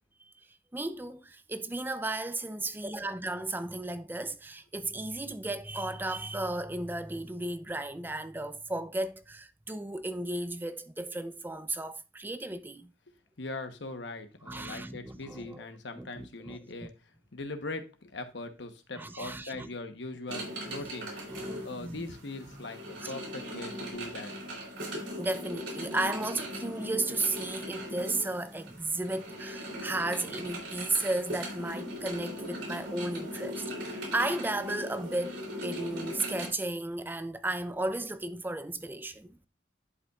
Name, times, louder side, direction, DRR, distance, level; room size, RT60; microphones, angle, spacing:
voice 1, 0.7-12.9 14.5-15.6 16.0-16.6 19.0-19.7 20.7-20.9 21.3-22.0 23.0-23.1 24.9-39.5, right 2 dB, 10° right, 0.5 m, -34 dB
voice 2, 13.4-21.1 21.6-24.8, left 2 dB, 80° left, 1.1 m, -41 dB
sound 1, 20.3-36.5, equal, 80° right, 3.2 m, -39 dB
11.0 x 5.3 x 2.4 m
head